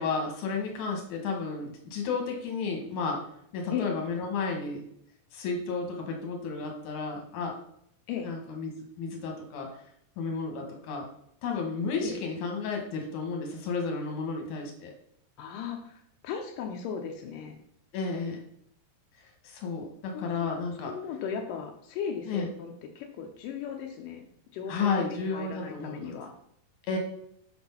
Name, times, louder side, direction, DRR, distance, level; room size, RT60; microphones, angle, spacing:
voice 1, 0.0-3.2 3.5-4.8 5.3-7.6 8.2-8.7 9.0-9.7 10.2-11.1 11.4-14.9 17.9-18.4 19.4-20.9 22.3-22.5 24.7-26.1 26.9-27.0, left 4 dB, 60° left, 2 dB, 2.3 m, -32 dB
voice 2, 15.4-17.6 20.1-20.3 20.8-24.2 24.5-26.3, left 7 dB, 80° left, 2 dB, 1.9 m, -36 dB
6.7 x 4.3 x 5.6 m, 0.71 s
omnidirectional pair, 4.7 m